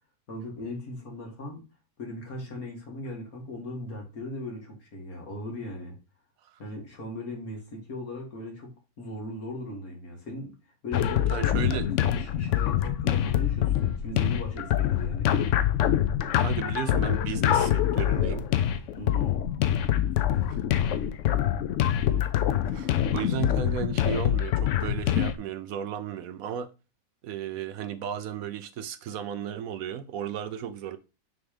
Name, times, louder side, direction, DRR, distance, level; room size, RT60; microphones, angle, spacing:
voice 1, 0.3-1.7 2.0-6.0 6.6-10.6 10.8-15.3 19.0-19.4, left 1 dB, 55° left, 2.3 m, -38 dB
sound 1, 10.9-25.3, left 11 dB, 80° left, 0.6 m, -25 dB
voice 2, 11.3-11.9 16.4-18.5 20.5-20.6 22.7-26.7 27.2-31.0, right 8 dB, 70° right, 0.9 m, -34 dB
6.3 x 3.5 x 4.9 m
omnidirectional pair, 1.9 m